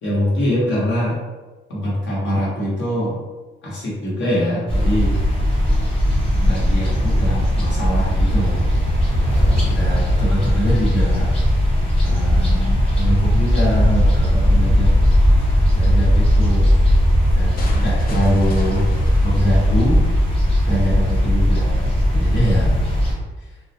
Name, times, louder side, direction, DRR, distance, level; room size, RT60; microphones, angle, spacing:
voice 1, 0.0-1.2 1.7-3.2 3.6-5.2 6.3-8.6 9.7-11.4 12.0-15.0 15.7-16.8 17.3-18.9 19.2-20.1 20.7-22.9, equal, 70° left, -6 dB, 1.1 m, -23 dB
sound 1, 4.7-23.1, equal, 30° left, 1.1 m, -17 dB
sound 2, 8.4-11.1, equal, 90° left, 1.0 m, -25 dB
sound 3, 17.6-20.6, left 3 dB, 45° left, 0.5 m, -39 dB
2.3 x 2.1 x 2.7 m, 1.2 s
cardioid pair, 90°, 20 cm